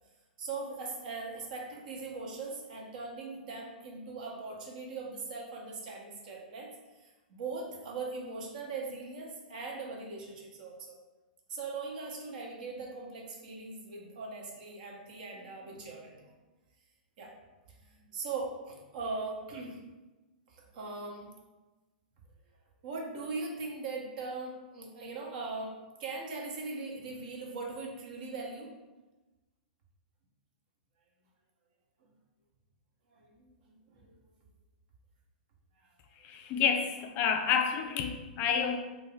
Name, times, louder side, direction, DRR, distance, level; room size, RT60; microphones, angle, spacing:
voice 1, 0.4-11.0 11.5-16.3 17.2-17.4 17.8-19.8 20.5-21.3 22.8-28.7 32.0-32.1 33.1-34.2, right 3 dB, 60° right, 0 dB, 0.8 m, -40 dB
voice 2, 36.2-38.8, left 7 dB, 35° left, 6 dB, 0.3 m, -29 dB
2.5 x 2.3 x 3.8 m, 1.1 s
hypercardioid pair, 115°, 5 cm